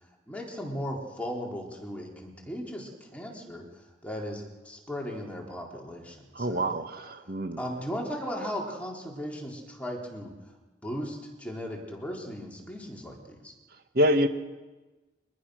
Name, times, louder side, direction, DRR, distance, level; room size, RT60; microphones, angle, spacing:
voice 1, 0.3-3.6 4.0-6.8 7.2-10.3 10.8-13.5, equal, 5° left, -1 dB, 4.1 m, -37 dB
voice 2, 6.3-7.6 13.9-14.3, equal, 55° right, 7 dB, 1.7 m, -26 dB
24.5 x 21.5 x 6.5 m, 1.2 s
head